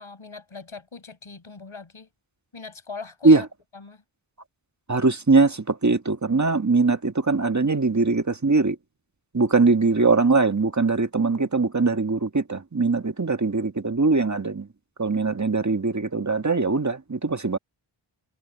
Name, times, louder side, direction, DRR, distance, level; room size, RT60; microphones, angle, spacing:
voice 1, 0.0-2.1 2.5-3.5 3.7-4.0, left 4 dB, 70° left, 6.9 m, -40 dB
voice 2, 4.9-8.8 9.3-14.7 15.0-17.6, right 3 dB, 35° right, 1.6 m, -21 dB
wide cardioid pair, 55°, 50 cm